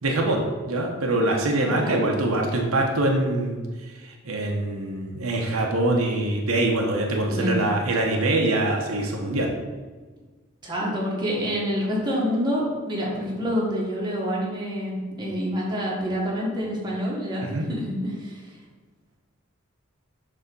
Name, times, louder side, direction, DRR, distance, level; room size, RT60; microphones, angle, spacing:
voice 1, 0.0-3.6 4.2-9.5 17.5-17.7, right 2 dB, 85° right, 1 dB, 1.0 m, -24 dB
voice 2, 1.6-2.0 7.3-7.6 10.6-18.4, equal, 20° right, -4 dB, 1.5 m, -27 dB
6.7 x 3.6 x 5.3 m, 1.3 s
head